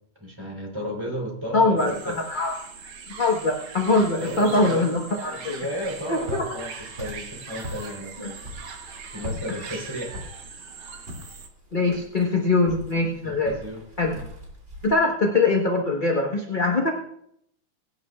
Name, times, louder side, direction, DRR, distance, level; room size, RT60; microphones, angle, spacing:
voice 1, 0.2-2.2 4.2-4.9 5.2-6.7 7.0-8.4 9.1-10.2 13.2-13.8, equal, 10° right, -2 dB, 3.4 m, -33 dB
voice 2, 1.5-1.9 2.3-2.5 3.2-5.5 6.1-6.4 8.2-8.3 11.7-13.5 14.0-14.2 14.8-16.9, left 3 dB, 30° left, -1 dB, 1.1 m, -22 dB
sound 1, 1.8-11.5, right 5 dB, 70° right, 2.1 m, -41 dB
Walk footsteps, 5.8-14.9, left 1 dB, 30° right, 3.1 m, -41 dB
22.5 x 9.7 x 2.4 m, 0.72 s
omnidirectional pair, 2.4 m